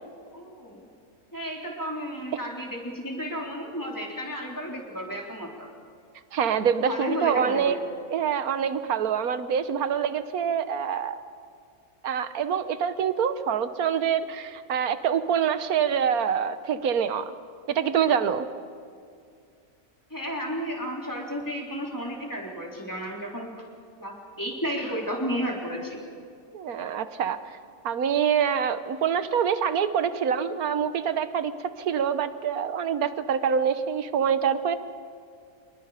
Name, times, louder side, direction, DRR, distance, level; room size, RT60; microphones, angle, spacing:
voice 1, 0.3-0.9 1.3-5.7 6.8-7.9 20.1-23.7 24.0-26.0, equal, 10° left, -2 dB, 3.7 m, -33 dB
voice 2, 6.3-7.8 8.1-11.2 12.0-17.3 17.7-18.5 26.5-27.4 27.8-31.5 31.8-34.8, right 7 dB, 75° right, 11 dB, 1.5 m, -25 dB
27.0 x 22.0 x 5.0 m, 2.3 s
omnidirectional pair, 1.6 m